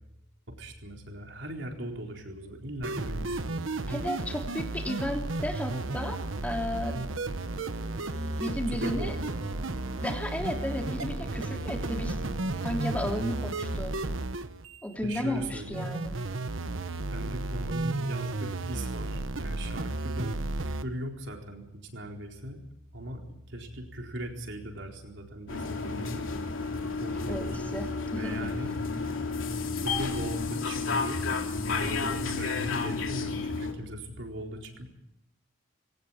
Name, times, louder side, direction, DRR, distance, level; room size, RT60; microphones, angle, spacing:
voice 1, 0.6-3.7 8.7-9.4 15.0-15.8 17.1-22.6 22.9-26.3 27.0-27.5 28.2-28.7 29.8-31.2 31.7-34.9, right 1 dB, 65° right, 2 dB, 4.3 m, -39 dB
sound 1, 2.8-20.8, right 2 dB, 85° right, 1.3 m, -33 dB
voice 2, 3.9-7.0 8.4-9.1 10.0-12.2 12.6-13.9 14.8-16.1 27.3-28.5, equal, 5° left, 2 dB, 3.3 m, -33 dB
Organ, 7.3-13.1, equal, 20° right, 2.0 m, -46 dB
sound 2, 25.5-33.7, left 4 dB, 90° left, 3.1 m, -31 dB
21.5 x 18.0 x 8.9 m, 0.86 s
head